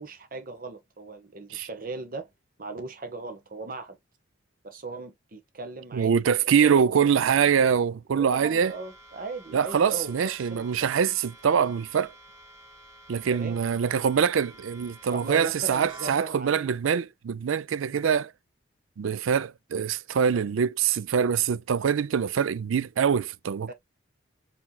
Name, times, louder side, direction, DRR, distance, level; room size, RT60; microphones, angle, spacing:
voice 1, 0.0-2.3 2.6-4.0 4.6-7.1 8.1-10.9 13.3-13.6 15.1-16.7 17.8-18.0 23.7-23.8, right 3 dB, 45° right, 1.2 m, -38 dB
voice 2, 5.9-8.7 9.5-12.1 13.1-18.3 19.0-23.7, right 7 dB, 85° right, 0.4 m, -24 dB
sound 1, 8.5-16.1, right 1 dB, 15° right, 1.5 m, -51 dB
4.5 x 4.3 x 2.3 m
head